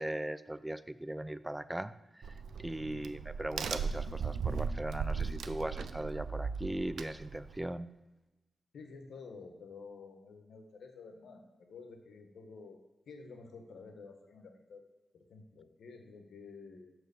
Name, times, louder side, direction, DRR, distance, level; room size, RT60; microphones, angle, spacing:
voice 1, 0.0-7.9, right 1 dB, 10° right, 14 dB, 0.3 m, -39 dB
Crack, 2.2-7.7, right 5 dB, 85° right, 0.4 m, -37 dB
voice 2, 2.8-3.1 8.7-12.8 13.1-14.8 15.1-16.9, left 4 dB, 90° left, 5 dB, 1.0 m, -51 dB
6.2 x 4.7 x 6.6 m, 1.1 s
cardioid pair, 75°, 0 cm